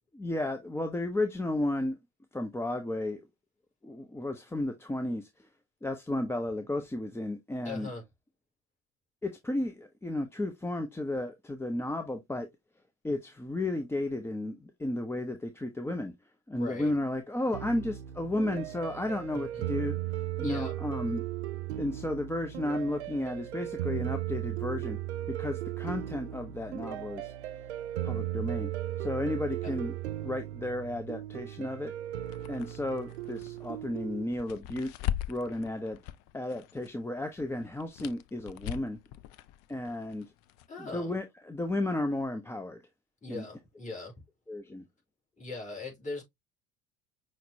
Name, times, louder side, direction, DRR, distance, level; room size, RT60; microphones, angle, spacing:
voice 1, 0.1-2.0 2.3-3.2 3.8-5.5 5.8-7.9 9.2-12.5 13.0-16.1 16.5-21.2 21.8-25.0 25.3-27.3 28.0-28.7 29.0-29.9 30.2-31.9 32.5-34.9 35.3-36.0 36.3-39.0 39.7-40.3 40.8-42.8 43.3-43.4 44.5-44.8, left 1 dB, 10° left, 0.6 m, -33 dB
voice 2, 7.6-8.0 16.5-17.0 19.3-19.6 20.4-20.7 29.6-29.8 40.7-41.2 43.2-44.1 45.4-46.2, left 3 dB, 25° left, 3.6 m, -40 dB
sound 1, 17.5-34.2, right 14 dB, 75° right, 0.5 m, -36 dB
sound 2, 32.2-36.9 37.2-40.7, left 12 dB, 50° left, 0.5 m, -40 dB
5.8 x 3.1 x 2.7 m
figure-of-eight pair, 65°, 32 cm